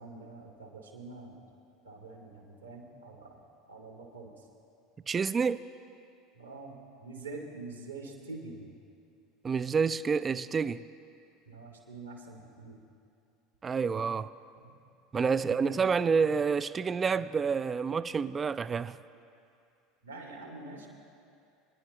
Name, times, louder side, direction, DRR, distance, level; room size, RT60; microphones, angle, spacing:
voice 1, 0.0-1.4 1.8-4.5 6.3-8.8 11.5-12.8 14.6-14.8 15.2-15.8 20.0-20.9, right 3 dB, 85° right, 2.2 m, -46 dB
voice 2, 5.1-5.6 9.4-10.8 13.6-14.3 15.1-19.0, right 5 dB, 25° right, 0.4 m, -28 dB
26.5 x 10.5 x 2.9 m
figure-of-eight pair, 75°, 0 cm